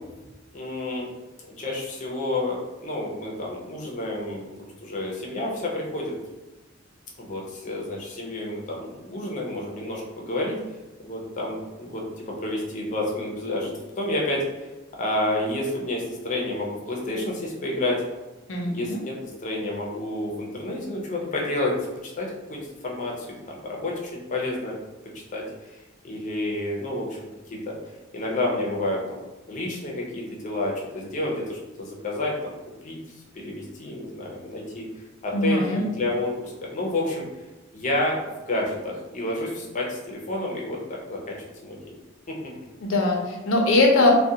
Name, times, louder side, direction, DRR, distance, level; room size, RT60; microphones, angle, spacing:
voice 1, 0.5-1.1 1.5-6.1 7.2-10.6 11.0-14.4 15.0-18.0 18.7-19.1 19.4-21.7 22.0-24.7 25.3-25.4 26.0-27.2 27.5-27.7 28.1-29.2 29.5-32.3 32.8-33.0 33.3-34.9 35.2-37.2 37.7-41.4 41.6-41.8 42.3-42.4, left 1 dB, 40° left, -2 dB, 0.6 m, -29 dB
voice 2, 18.5-19.0 35.3-35.9 42.8-44.1, left 2 dB, 90° left, 1 dB, 0.6 m, -21 dB
2.4 x 2.2 x 2.7 m, 1.1 s
head